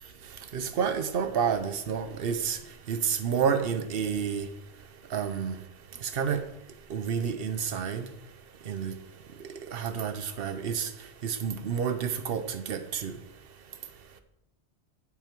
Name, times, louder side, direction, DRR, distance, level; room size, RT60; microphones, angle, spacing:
voice 1, 0.5-2.6 2.9-4.5 5.1-5.6 6.1-6.4 6.9-8.1 8.7-8.9 9.7-10.9 11.2-13.1, right 7 dB, 60° right, 0.8 m, -29 dB
8.2 x 5.5 x 4.5 m
omnidirectional pair, 1.2 m